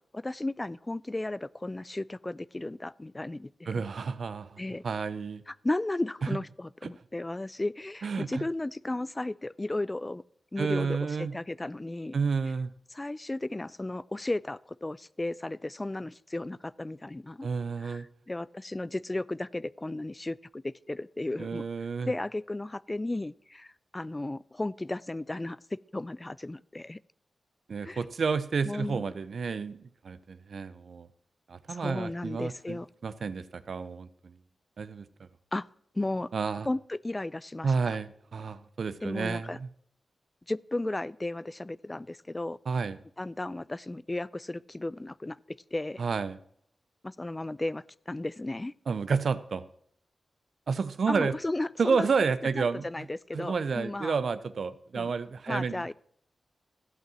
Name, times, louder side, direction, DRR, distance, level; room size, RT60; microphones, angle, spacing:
voice 1, 0.1-3.8 4.6-4.8 5.5-10.2 10.5-12.2 12.9-17.5 17.8-21.6 22.1-27.0 27.8-28.0 28.6-29.0 31.7-32.9 35.5-35.7 35.9-36.3 36.6-38.0 39.0-39.6 40.5-42.6 43.2-46.0 47.0-48.7 51.1-52.1 52.6-54.2 54.9-55.1 55.5-55.9, left 2 dB, 25° left, 20 dB, 0.3 m, -34 dB
voice 2, 3.7-5.4 6.8-6.9 8.0-8.4 10.6-11.3 12.1-12.7 17.4-18.1 21.4-22.1 27.7-31.1 31.5-34.3 34.8-35.3 36.3-36.7 37.6-39.7 42.7-43.0 46.0-46.4 48.9-49.6 50.7-51.3 51.8-52.9 53.3-55.9, right 5 dB, 70° right, 14 dB, 0.6 m, -30 dB
13.5 x 5.6 x 7.4 m, 0.66 s
cardioid pair, 45°, 0 cm